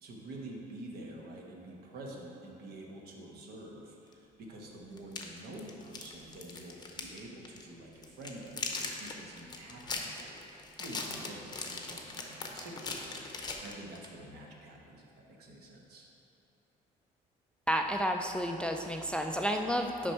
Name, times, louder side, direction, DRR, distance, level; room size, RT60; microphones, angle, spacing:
voice 1, 0.0-16.1, right 1 dB, 65° right, 0 dB, 1.1 m, -48 dB
sound 1, 4.1-4.2 5.0-7.2 7.4-7.6 8.0-14.1, left 3 dB, 25° left, 0.7 m, -40 dB
voice 2, 17.7-20.1, equal, 5° left, 3 dB, 0.3 m, -31 dB
6.3 x 5.2 x 4.4 m, 2.8 s
cardioid pair, 110°, 17 cm